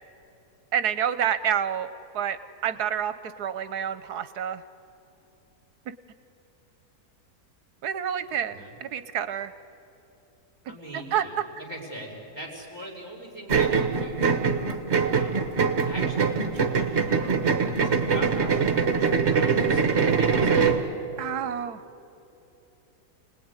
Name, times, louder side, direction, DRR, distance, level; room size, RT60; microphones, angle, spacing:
voice 1, 0.7-1.9 2.1-2.4 2.6-3.1 3.4-4.6 7.8-9.5 10.9-11.2 20.3-20.5 21.2-21.8, right 9 dB, 80° right, 12 dB, 1.3 m, -28 dB
voice 2, 8.3-8.7 10.7-14.3 15.0-15.4 15.8-20.8, right 1 dB, 15° left, -2 dB, 4.8 m, -41 dB
sound 1, 13.5-20.8, right 5 dB, 45° right, 1.6 m, -23 dB
29.0 x 19.5 x 9.6 m, 2.9 s
omnidirectional pair, 1.7 m